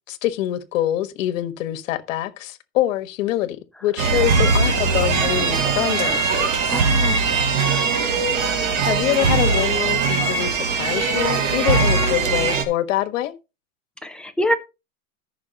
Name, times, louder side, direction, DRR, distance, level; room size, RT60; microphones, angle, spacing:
voice 1, 0.1-6.8 8.8-13.3, left 13 dB, 65° left, 1.5 m, -25 dB
sound 1, 4.0-12.6, right 4 dB, 65° right, 2.6 m, -20 dB
voice 2, 6.7-7.3 14.0-14.6, equal, ahead, 0.4 m, -25 dB
14.5 x 6.2 x 2.9 m
supercardioid pair, 145°, 42 cm